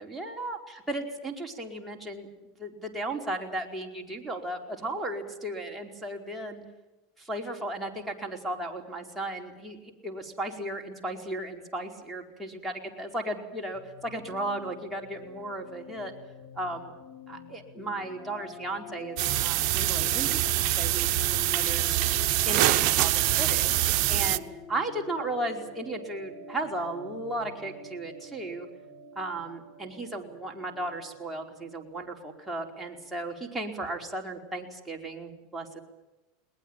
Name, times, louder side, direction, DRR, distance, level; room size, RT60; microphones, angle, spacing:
voice 1, 0.1-6.6 7.2-12.7 13.0-16.1 16.6-16.9 17.3-22.0 22.4-23.7 24.1-24.4 24.7-28.7 29.1-35.8, right 1 dB, 5° right, 0 dB, 4.7 m, -35 dB
sound 1, 13.7-33.2, left 5 dB, 25° left, 5.0 m, -46 dB
sound 2, 19.2-24.4, right 15 dB, 55° right, 0.9 m, -25 dB
21.5 x 20.0 x 9.0 m, 1.0 s
hypercardioid pair, 105°, 0 cm